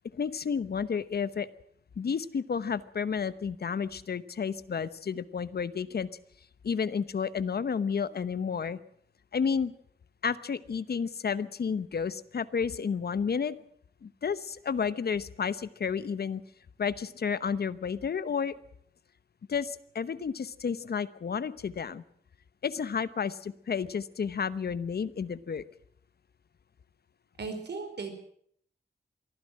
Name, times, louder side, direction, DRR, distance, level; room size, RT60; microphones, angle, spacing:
voice 1, 0.1-1.5 2.0-6.1 6.6-8.8 9.3-9.7 10.2-13.6 14.0-16.4 16.8-18.6 19.5-22.0 22.6-25.6, left 6 dB, 60° left, 15 dB, 1.0 m, -31 dB
voice 2, 27.4-28.1, right 4 dB, 70° right, 7 dB, 4.8 m, -36 dB
23.5 x 15.5 x 7.6 m, 0.66 s
wide cardioid pair, 155°, 18 cm